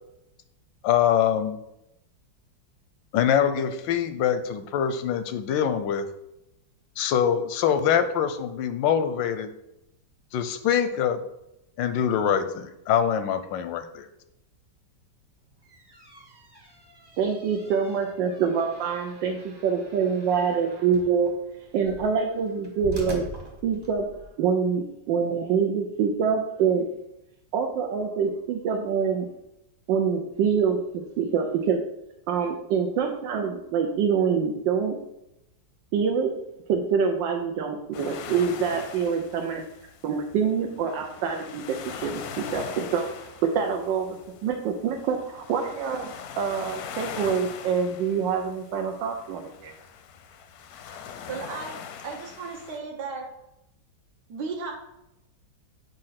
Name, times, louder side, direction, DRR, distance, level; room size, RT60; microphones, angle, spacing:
voice 1, 0.8-1.6 3.1-6.1 7.0-9.5 10.3-11.2 11.8-14.1, left 8 dB, 90° left, 10 dB, 1.3 m, -24 dB
sound 1, 15.4-24.3, left 1 dB, 20° right, 0.8 m, -44 dB
voice 2, 17.2-23.3 23.6-26.9 27.5-29.3 29.9-31.9 32.3-35.0 35.9-36.4 36.7-39.6 40.0-49.7, right 6 dB, 90° right, 3 dB, 1.4 m, -26 dB
sound 2, 37.9-52.8, left 7 dB, 70° left, 0.9 m, -41 dB
voice 3, 51.3-53.3 54.3-54.7, right 4 dB, 70° right, 0 dB, 1.6 m, -35 dB
7.5 x 2.6 x 5.7 m, 0.86 s
omnidirectional pair, 1.9 m